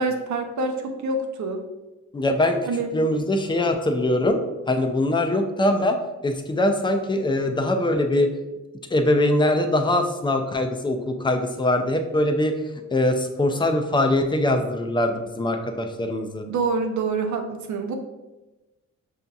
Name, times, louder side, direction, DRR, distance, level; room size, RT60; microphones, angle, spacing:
voice 1, 0.0-1.6 2.7-2.9 16.5-17.9, right 3 dB, 70° right, 5 dB, 0.6 m, -26 dB
voice 2, 2.1-2.6 2.9-4.4 4.7-6.0 6.2-8.3 8.9-12.5 12.9-16.4, left 1 dB, 15° left, 5 dB, 0.4 m, -22 dB
5.5 x 2.6 x 2.3 m, 1.1 s
cardioid pair, 90°, 30 cm